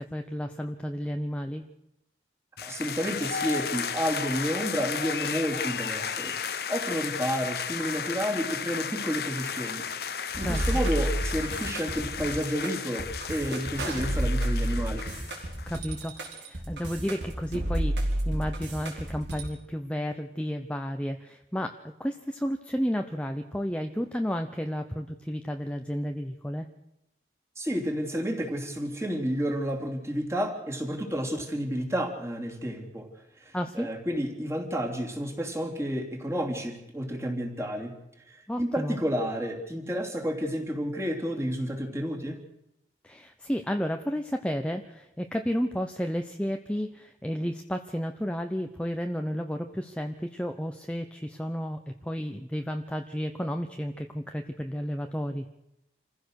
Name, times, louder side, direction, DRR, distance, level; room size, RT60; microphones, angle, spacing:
voice 1, 0.0-1.6 10.4-10.6 15.7-26.7 33.5-33.9 38.5-39.0 43.0-55.5, equal, 5° left, 5 dB, 0.8 m, -32 dB
sound 1, 2.6-15.8, left 7 dB, 60° left, 1.0 m, -34 dB
voice 2, 2.6-15.1 27.6-33.1 33.4-38.0 38.3-42.4, equal, 15° right, 1 dB, 3.0 m, -31 dB
sound 2, 10.3-19.5, right 1 dB, 85° right, 5.0 m, -30 dB
27.0 x 15.5 x 6.5 m, 0.85 s
head